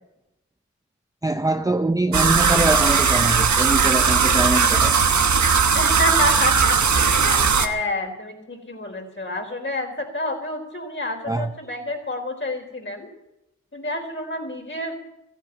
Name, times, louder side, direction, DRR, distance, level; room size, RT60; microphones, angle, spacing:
voice 1, 1.2-5.1 11.3-11.5, right 2 dB, 10° right, 0.6 m, -23 dB
sound 1, 2.1-7.7, right 6 dB, 70° right, 1.2 m, -18 dB
voice 2, 5.7-13.1 13.7-15.0, left 1 dB, 40° left, 4.3 m, -28 dB
15.0 x 9.2 x 9.4 m
cardioid pair, 55°, 30 cm